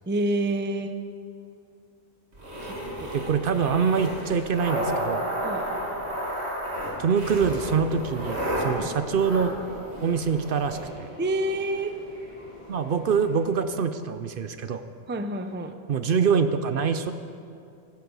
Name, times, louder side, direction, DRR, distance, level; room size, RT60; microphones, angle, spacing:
voice 1, 0.1-0.9 2.6-3.1 5.4-5.6 8.8-8.9 11.2-11.9 15.1-15.7, right 1 dB, 15° right, 8 dB, 0.4 m, -28 dB
sound 1, 2.3-10.8, equal, 75° right, 2.7 m, -32 dB
voice 2, 3.1-5.3 7.0-9.6 10.0-11.1 12.7-14.8 15.9-17.1, right 6 dB, 60° right, 10 dB, 0.7 m, -25 dB
sound 2, 7.2-13.8, equal, 45° left, 4.0 m, -46 dB
14.0 x 12.5 x 5.3 m, 2.5 s
omnidirectional pair, 1.1 m